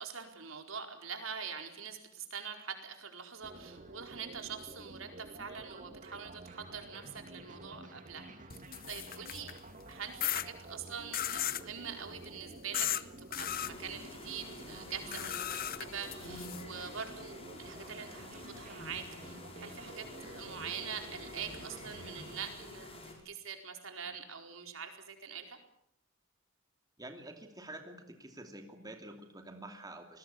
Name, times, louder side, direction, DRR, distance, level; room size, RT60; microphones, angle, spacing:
voice 1, 0.0-8.3 8.9-9.5 9.9-12.9 13.2-25.6, right 6 dB, 85° right, 4 dB, 4.5 m, -44 dB
sound 1, 3.4-22.4, right 2 dB, 40° right, 2.7 m, -51 dB
sound 2, 8.5-9.6 10.2-10.5 11.1-11.7 12.7-13.0 13.3-13.7 15.1-16.6, left 11 dB, 45° left, 0.9 m, -35 dB
sound 3, 13.4-23.1, left 1 dB, 30° left, 6.5 m, -49 dB
voice 2, 27.0-30.2, right 1 dB, 20° right, 5 dB, 2.8 m, -48 dB
28.5 x 20.5 x 7.2 m, 0.71 s
head